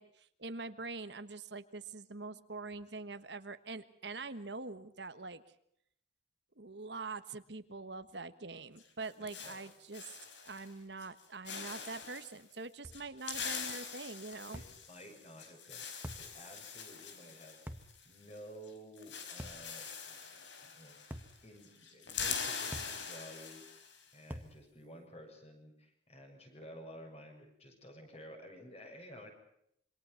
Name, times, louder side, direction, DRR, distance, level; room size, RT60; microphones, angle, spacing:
voice 1, 0.0-5.4 6.6-10.1 10.4-14.6, right 3 dB, 65° right, 11 dB, 1.4 m, -44 dB
sound 1, 8.8-10.7 11.0-11.2 11.5-12.3 12.9-18.4 18.6-18.7 19.0-21.4 21.6-24.0, left 6 dB, 70° left, 4.7 m, -43 dB
voice 2, 9.2-9.6 14.5-15.9 16.2-17.6 18.0-21.0 21.4-23.6 24.1-29.3, equal, 35° left, 4 dB, 7.0 m, -53 dB
sound 2, 12.8-13.1 14.5-14.8 16.0-16.3 17.7-17.9 19.4-19.7 21.1-21.4 22.7-23.0 24.3-24.6, equal, 10° right, 1.7 m, -45 dB
27.0 x 24.5 x 5.8 m, 0.73 s
head